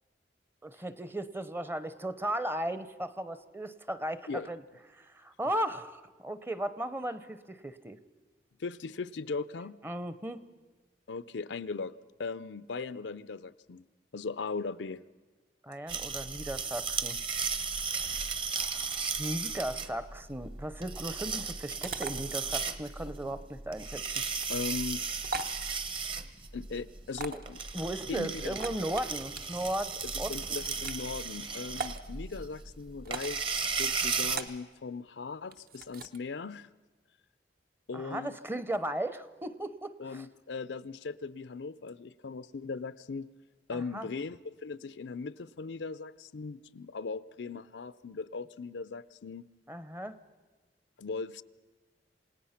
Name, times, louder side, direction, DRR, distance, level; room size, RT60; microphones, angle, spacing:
voice 1, 0.6-4.6 4.9-8.0 9.8-10.4 15.6-17.2 18.6-24.0 27.3-27.4 27.7-30.3 37.9-40.2 43.7-44.1 49.7-50.2, right 1 dB, 15° right, 13 dB, 0.7 m, -36 dB
voice 2, 8.6-9.8 11.1-11.9 12.2-13.8 14.1-15.0 24.5-25.0 26.5-27.6 28.1-28.6 30.0-36.7 37.9-38.4 40.0-43.3 43.7-49.5 51.0-51.4, left 4 dB, 85° left, 15 dB, 0.5 m, -38 dB
sound 1, 15.9-34.4, right 5 dB, 30° right, 1.0 m, -35 dB
sound 2, 21.8-22.1 24.3-24.6 25.2-25.6 27.1-27.5 28.5-29.4 30.4-31.0 31.8-32.0 33.0-33.4 34.3-34.6 35.5-36.2, right 4 dB, 55° right, 0.9 m, -39 dB
28.0 x 18.0 x 5.8 m, 1.3 s
head